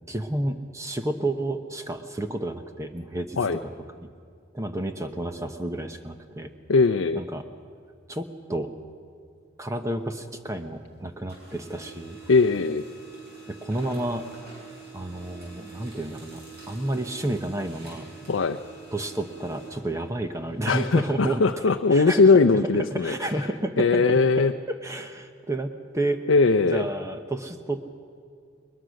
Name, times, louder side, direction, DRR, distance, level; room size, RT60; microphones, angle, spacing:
voice 1, 0.1-3.7 4.0-4.1 4.5-6.5 7.2-7.4 8.1-8.7 9.6-12.2 13.5-14.2 14.9-18.1 18.9-21.4 21.9-22.2 22.9-24.0 24.7-26.2 26.7-27.8, right 1 dB, 15° right, 7 dB, 0.9 m, -31 dB
voice 2, 6.7-7.2 12.3-12.8 18.3-18.6 20.7-23.4 23.8-24.5 26.3-26.9, left 4 dB, 85° left, 5 dB, 0.6 m, -20 dB
Printer, 9.6-10.9 11.2-20.7, right 4 dB, 55° right, 7.4 m, -46 dB
21.0 x 21.0 x 6.4 m, 2.3 s
head